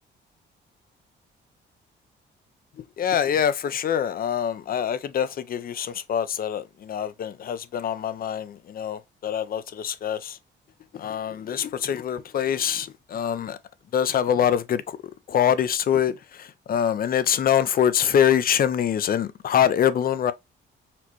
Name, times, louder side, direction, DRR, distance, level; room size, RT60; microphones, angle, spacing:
voice 1, 2.8-10.4 10.9-13.6 13.9-15.0 15.3-20.3, left 9 dB, 50° left, 0.4 m, -24 dB
4.2 x 2.1 x 2.9 m
cardioid pair, 90°, 20 cm